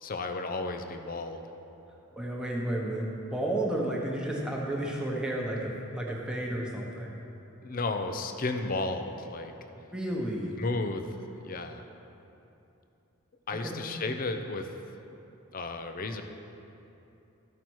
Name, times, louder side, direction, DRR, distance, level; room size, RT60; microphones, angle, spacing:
voice 1, 0.0-1.4 7.6-9.5 10.6-11.2 11.4-11.8 13.5-14.7 15.5-16.2, left 3 dB, 40° left, 7 dB, 0.6 m, -33 dB
voice 2, 2.2-7.2 9.9-10.7 13.5-13.8, right 1 dB, 5° right, -2 dB, 1.0 m, -32 dB
13.0 x 5.8 x 4.6 m, 2.8 s
head